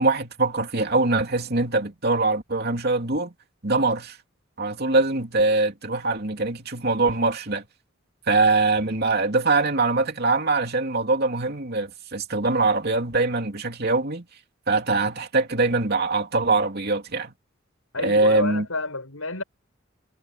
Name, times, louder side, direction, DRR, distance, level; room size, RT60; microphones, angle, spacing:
voice 1, 0.0-3.3 3.6-4.2 4.6-7.6 8.3-14.2 14.7-17.3 18.0-18.7, right 3 dB, 50° right, 2.9 m, -23 dB
voice 2, 17.9-19.4, left 3 dB, 85° left, 6.5 m, -30 dB
head